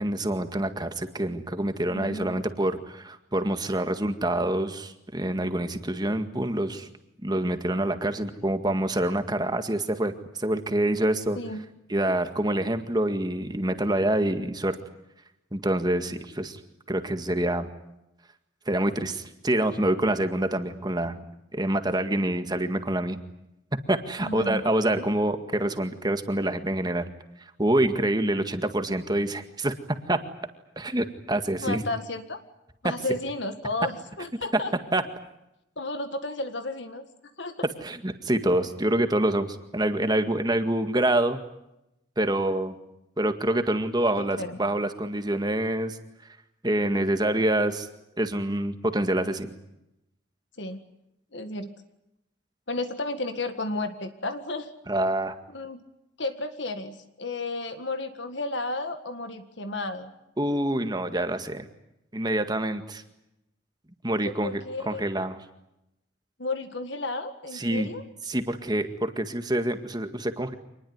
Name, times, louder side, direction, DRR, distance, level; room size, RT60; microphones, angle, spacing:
voice 1, 0.0-6.9 7.2-10.1 10.4-11.4 11.9-14.8 15.5-16.6 16.9-17.7 18.7-21.2 21.5-23.2 23.9-27.1 27.6-29.7 30.1-30.2 30.8-31.8 34.9-35.0 37.8-41.4 42.2-42.8 43.2-46.0 46.6-47.9 48.2-49.5 54.9-55.4 60.4-61.7 62.1-63.0 64.0-65.4 67.5-67.9 68.3-70.5, right 1 dB, 20° right, 8 dB, 1.9 m, -26 dB
voice 2, 1.8-2.4 11.4-11.6 24.2-24.6 25.0-25.1 31.6-32.4 32.8-34.7 35.8-37.0 37.4-37.5 44.2-44.6 50.6-50.8 51.3-51.7 52.7-54.7 55.5-55.8 56.2-60.1 64.2-65.0 66.4-68.0, left 2 dB, 65° left, 8 dB, 1.8 m, -33 dB
26.0 x 20.5 x 9.6 m, 0.87 s
head